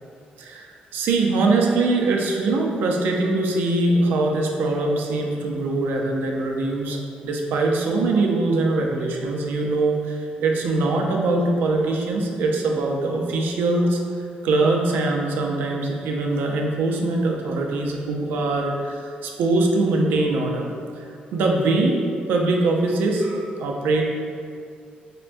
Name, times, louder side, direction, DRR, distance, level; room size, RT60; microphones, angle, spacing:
voice 1, 0.4-14.0 14.4-21.0 21.3-22.0 22.3-24.0, right 2 dB, 90° right, 0 dB, 0.4 m, -22 dB
4.3 x 2.1 x 2.5 m, 2.3 s
cardioid pair, 140°, 3 cm